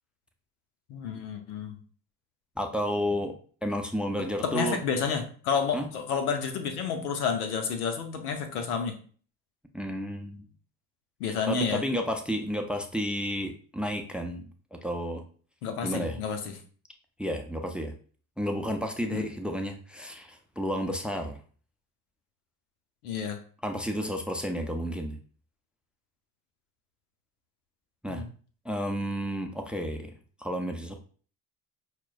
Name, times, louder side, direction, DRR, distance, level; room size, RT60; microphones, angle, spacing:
voice 1, 0.9-1.8 4.4-9.0 11.2-11.8 15.6-16.6 19.1-19.2 23.0-23.4 28.1-28.3, left 6 dB, 85° left, 7 dB, 0.7 m, -30 dB
voice 2, 2.6-3.3 3.6-4.8 5.7-5.9 9.7-10.5 11.5-15.2 15.8-16.2 17.2-17.9 18.4-21.4 23.6-25.2 28.0-28.2 28.6-30.1 30.4-30.9, equal, ahead, 5 dB, 0.4 m, -31 dB
5.8 x 2.1 x 2.4 m, 0.43 s
hypercardioid pair, 55°, 44 cm